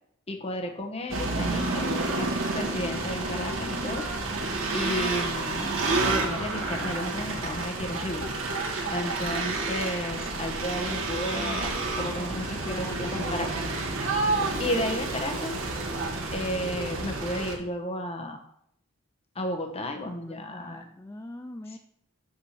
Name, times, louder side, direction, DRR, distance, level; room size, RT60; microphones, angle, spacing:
voice 1, 0.3-4.0 4.7-5.7 6.0-8.3 8.9-11.7 12.0-13.6 14.6-15.5 16.3-18.4 19.3-20.8 21.7-21.8, left 1 dB, 30° left, 5 dB, 1.2 m, -33 dB
sound 1, 1.1-17.5, right 3 dB, 70° right, 1.8 m, -30 dB
voice 2, 3.8-4.5 12.2-13.7 20.0-21.8, left 1 dB, 15° left, 5 dB, 0.4 m, -43 dB
7.3 x 5.8 x 5.9 m, 0.74 s
head